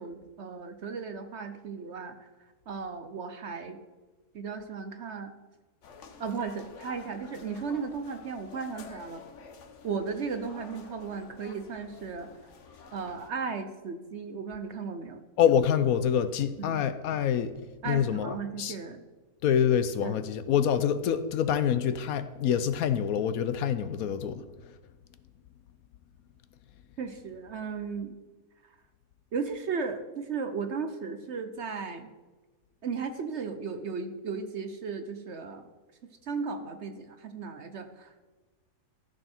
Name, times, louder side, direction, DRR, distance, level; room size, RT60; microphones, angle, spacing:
voice 1, 0.0-2.3 2.7-3.8 4.3-5.3 6.2-9.2 9.8-12.3 12.9-15.2 16.6-16.8 17.8-19.0 20.0-20.2 27.0-28.2 29.3-32.1 32.8-35.7 36.2-38.2, right 5 dB, 55° right, 8 dB, 0.9 m, -35 dB
sound 1, 5.8-13.3, left 5 dB, 55° left, 1.2 m, -50 dB
voice 2, 15.4-17.5 17.8-18.8 19.4-24.4, left 8 dB, 70° left, 13 dB, 1.0 m, -26 dB
13.5 x 6.6 x 4.4 m, 1.3 s
omnidirectional pair, 1.7 m